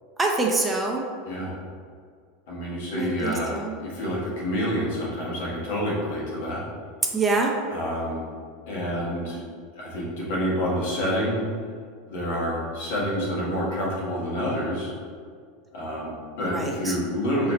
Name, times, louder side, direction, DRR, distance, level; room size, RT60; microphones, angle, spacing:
voice 1, 0.2-1.0 3.0-3.7 7.1-7.5 16.4-17.0, right 3 dB, 15° right, 0 dB, 0.5 m, -25 dB
voice 2, 1.2-1.6 2.5-6.6 7.7-8.2 8.7-11.4 12.1-14.9 15.7-17.5, equal, 75° left, -5 dB, 1.5 m, -28 dB
4.2 x 2.8 x 4.1 m, 2.1 s
supercardioid pair, 130°, 0 cm